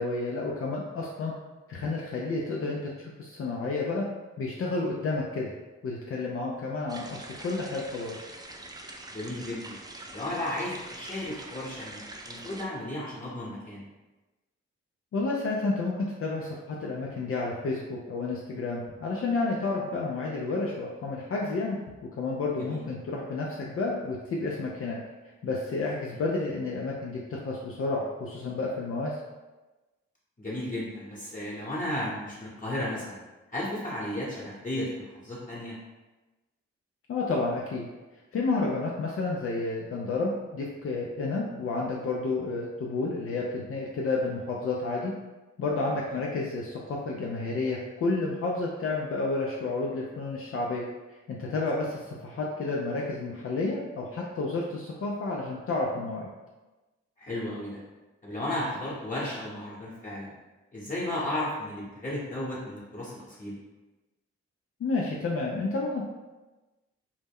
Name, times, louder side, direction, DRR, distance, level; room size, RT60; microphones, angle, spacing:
voice 1, 0.0-1.3 1.7-4.1 4.4-5.5 5.8-8.2 15.1-21.8 22.2-25.0 25.4-29.2 37.1-37.9 38.3-45.1 45.6-50.8 51.3-56.3 64.8-66.0, left 3 dB, 50° left, -3 dB, 0.4 m, -30 dB
sound 1, 6.9-12.6, right 2 dB, 15° right, 0.3 m, -44 dB
voice 2, 9.1-9.8 10.1-13.9 22.6-22.8 26.1-26.2 30.4-33.2 33.5-35.7 57.2-57.8 58.2-60.3 60.7-63.6, left 1 dB, 25° left, -9 dB, 1.0 m, -34 dB
2.1 x 2.0 x 3.5 m, 1.2 s
supercardioid pair, 45°, 30 cm